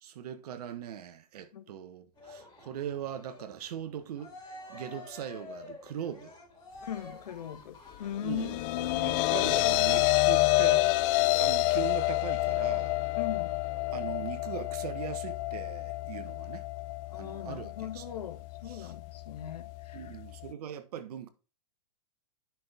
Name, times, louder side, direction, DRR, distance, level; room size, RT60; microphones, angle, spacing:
voice 1, 0.0-4.3 4.7-6.3 8.2-8.6 9.0-10.9 11.4-13.0 13.9-16.6 17.2-18.0 18.7-18.9 19.9-21.3, right 9 dB, 65° right, 1.3 m, -40 dB
Cheering, 2.2-8.6, left 2 dB, 20° left, 4.5 m, -49 dB
voice 2, 6.8-9.3 13.2-13.5 17.1-20.2, left 10 dB, 75° left, 1.5 m, -39 dB
sound 1, 8.2-20.5, left 19 dB, 35° left, 0.5 m, -29 dB
10.5 x 6.0 x 3.6 m
hypercardioid pair, 130°, 21 cm